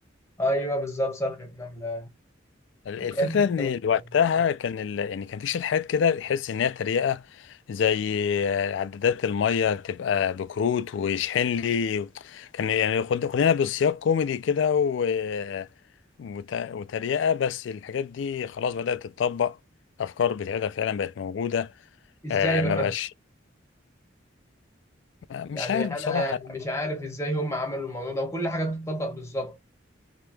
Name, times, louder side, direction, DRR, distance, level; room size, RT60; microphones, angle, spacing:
voice 1, 0.4-2.1 3.0-3.7 22.2-22.9 25.5-29.6, equal, 15° left, 1.2 m, -29 dB
voice 2, 2.9-15.7 16.2-19.6 20.0-21.7 22.3-23.1 25.3-26.4, left 7 dB, 75° left, 0.3 m, -26 dB
2.9 x 2.2 x 3.2 m
head